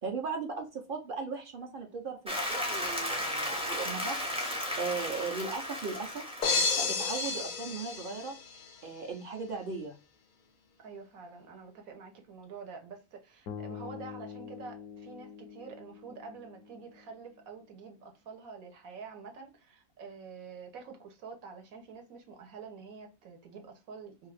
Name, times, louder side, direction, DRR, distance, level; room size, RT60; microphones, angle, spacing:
voice 1, 0.0-8.4 8.8-9.9, right 4 dB, 50° right, 0.6 m, -38 dB
Applause, 2.3-7.3, equal, 10° right, 0.3 m, -35 dB
sound 1, 6.4-8.7, left 4 dB, 65° left, 0.4 m, -31 dB
voice 2, 10.8-24.3, right 5 dB, 80° right, 1.2 m, -47 dB
sound 2, 13.5-17.6, left 7 dB, 85° left, 1.0 m, -46 dB
2.7 x 2.3 x 3.2 m
omnidirectional pair, 1.4 m